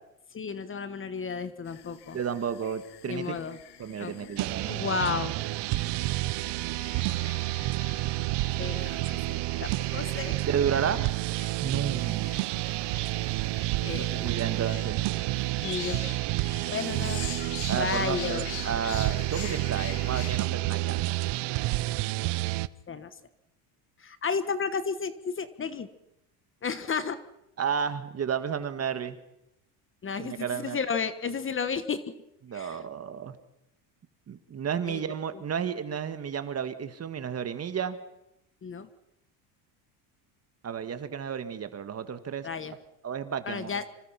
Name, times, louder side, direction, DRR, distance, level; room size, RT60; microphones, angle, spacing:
voice 1, 0.3-2.2 3.1-3.6 3.8-4.3 4.6-5.4 8.6-10.4 13.8-14.3 15.6-16.0 16.4-17.3 17.8-18.5 22.9-23.1 24.0-25.9 26.6-27.2 30.0-32.0 32.5-32.8 34.9-35.0 38.6-38.9 42.4-42.7 43.4-43.8, left 5 dB, 25° left, 12 dB, 1.4 m, -32 dB
sound 1, 1.7-20.5, left 12 dB, 55° left, 2.0 m, -46 dB
voice 2, 2.1-3.4 3.8-4.7 10.3-11.1 11.6-12.3 13.9-15.0 17.7-21.2 27.6-29.2 30.2-30.8 32.4-33.3 34.3-38.0 40.6-42.5 43.0-43.7, right 7 dB, 30° right, 10 dB, 1.8 m, -32 dB
sound 2, 4.4-22.7, right 19 dB, 65° right, 0.9 m, -30 dB
26.0 x 25.0 x 5.9 m, 0.84 s
cardioid pair, 120°, 46 cm